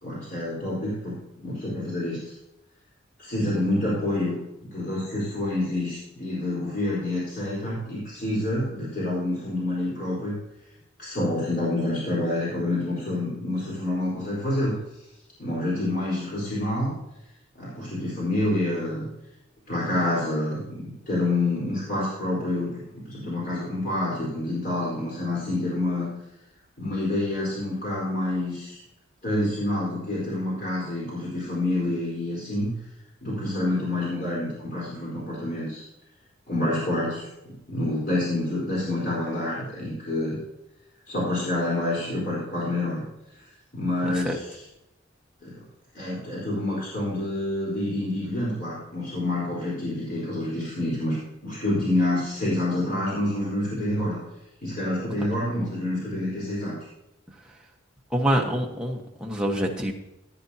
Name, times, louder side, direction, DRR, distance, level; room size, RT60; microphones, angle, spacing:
voice 1, 0.0-2.3 3.2-4.4 4.7-10.4 11.0-14.7 15.4-16.9 17.6-19.1 19.7-26.1 26.8-28.8 29.2-32.7 33.2-35.8 36.5-40.4 41.1-43.0 43.7-44.6 45.4-45.6 45.9-51.2 51.4-54.2 54.6-56.8, left 1 dB, 45° left, -7 dB, 4.1 m, -27 dB
voice 2, 58.1-59.9, equal, 5° right, -1 dB, 1.3 m, -25 dB
14.5 x 9.8 x 2.8 m, 0.88 s
head